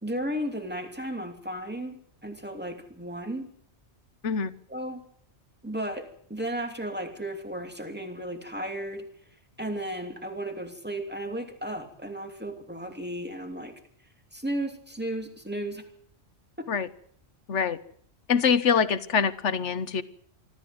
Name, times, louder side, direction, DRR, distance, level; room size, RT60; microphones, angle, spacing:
voice 1, 0.0-3.4 4.7-5.0 5.6-9.0 9.6-13.7 14.3-15.8, right 1 dB, 10° right, 4 dB, 2.8 m, -34 dB
voice 2, 18.3-20.0, left 6 dB, 80° left, 14 dB, 1.4 m, -24 dB
24.5 x 13.5 x 7.9 m, 0.64 s
omnidirectional pair, 1.2 m